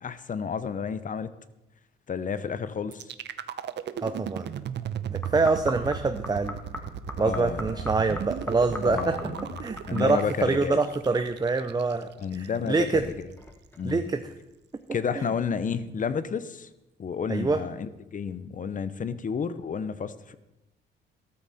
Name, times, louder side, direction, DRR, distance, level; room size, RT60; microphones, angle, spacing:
voice 1, 0.0-1.3 2.1-3.0 7.2-7.8 8.8-9.5 9.8-10.8 12.2-13.1 13.8-14.0 14.9-16.7 17.0-20.3, left 6 dB, 40° left, 14 dB, 0.9 m, -31 dB
sound 1, 2.9-12.9, right 9 dB, 60° right, 0.8 m, -36 dB
voice 2, 4.0-4.5 5.1-6.6 7.2-9.2 9.6-12.1 12.3-13.1 13.8-14.2 15.1-15.3 17.3-17.6, right 3 dB, 20° right, 8 dB, 0.7 m, -25 dB
sound 2, 5.2-10.7 10.9-11.9 12.3-14.2 14.8-14.9, left 1 dB, 10° left, 1.8 m, -41 dB
13.5 x 13.0 x 4.3 m, 0.95 s
cardioid pair, 90°, 20 cm